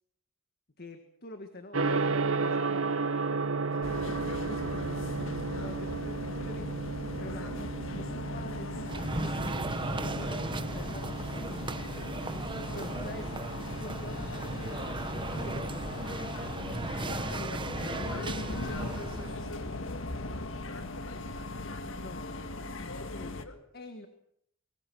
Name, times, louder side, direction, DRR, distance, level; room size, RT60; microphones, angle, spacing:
voice 1, 0.8-3.2 5.6-6.9 7.2-8.9 9.2-12.3 12.7-16.1 16.6-18.1 21.8-22.7 23.1-24.1, left 2 dB, 50° left, 7 dB, 1.8 m, -47 dB
Gong, 1.7-20.7, right 4 dB, 80° right, 1.4 m, -36 dB
voice 2, 3.6-6.7 7.3-7.6 12.4-13.0 16.9-23.6, left 2 dB, 85° left, 7 dB, 5.5 m, -48 dB
sound 1, 3.8-23.4, left 2 dB, 65° left, 1.7 m, -39 dB
sound 2, 8.8-19.5, right 2 dB, 25° right, 1.1 m, -37 dB
24.5 x 23.5 x 6.3 m, 0.72 s
head